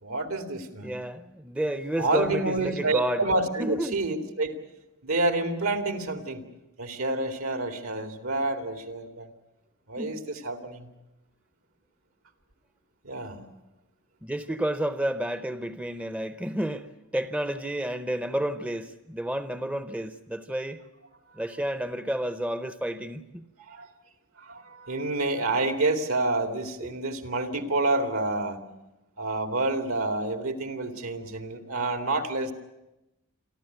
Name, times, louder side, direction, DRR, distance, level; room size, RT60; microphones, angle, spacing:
voice 1, 0.0-1.0 2.0-4.6 5.0-6.4 6.8-9.3 9.9-10.9 13.0-13.4 23.7-23.9 24.4-28.6 29.2-32.5, right 2 dB, 75° right, 2.3 m, -28 dB
voice 2, 0.8-3.2 3.6-4.0 10.0-10.3 14.2-16.9 17.1-20.8 21.4-23.5, right 1 dB, 5° right, 0.7 m, -30 dB
28.0 x 12.5 x 9.2 m
head